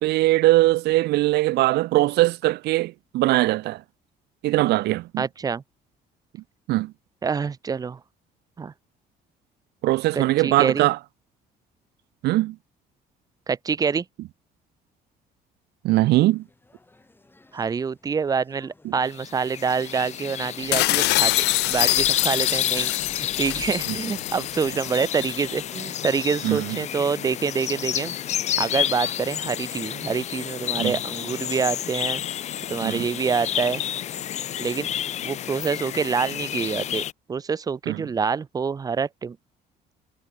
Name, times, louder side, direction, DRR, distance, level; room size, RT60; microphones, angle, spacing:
voice 1, 0.0-3.8 4.4-5.2 6.7-6.9 9.8-11.0 12.2-12.6 15.8-16.4 18.8-18.9 26.4-26.8 30.8-31.0 32.8-33.1 37.9-38.0, right 18 dB, 75° right, 0.7 m, -21 dB
voice 2, 5.2-5.6 7.2-8.0 8.6-8.7 10.1-10.9 13.5-14.0 17.5-21.3 21.7-28.1 28.6-32.2 32.7-33.8 34.6-34.9 35.2-37.0 37.3-39.4, right 5 dB, 20° right, 0.4 m, -26 dB
sound 1, 16.2-21.9, left 2 dB, 10° left, 7.0 m, -56 dB
sound 2, 19.1-37.1, left 11 dB, 40° left, 0.4 m, -30 dB
sound 3, 20.7-25.4, left 20 dB, 85° left, 0.7 m, -25 dB
cardioid pair, 110°, 17 cm